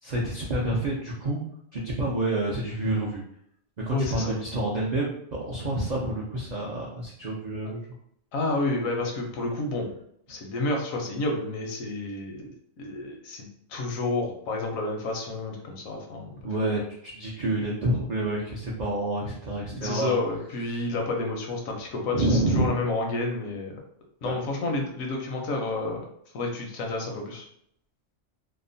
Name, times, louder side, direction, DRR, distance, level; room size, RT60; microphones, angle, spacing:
voice 1, 0.0-1.4 1.7-3.2 3.8-7.8 16.4-20.1 22.1-22.7 24.2-24.3, right 1 dB, 70° right, -4 dB, 0.4 m, -28 dB
voice 2, 3.9-4.4 8.3-9.9 10.3-16.4 19.7-23.7 24.2-26.0 26.3-27.5, left 2 dB, 80° left, 1 dB, 1.1 m, -30 dB
2.8 x 2.0 x 2.6 m, 0.70 s
omnidirectional pair, 1.4 m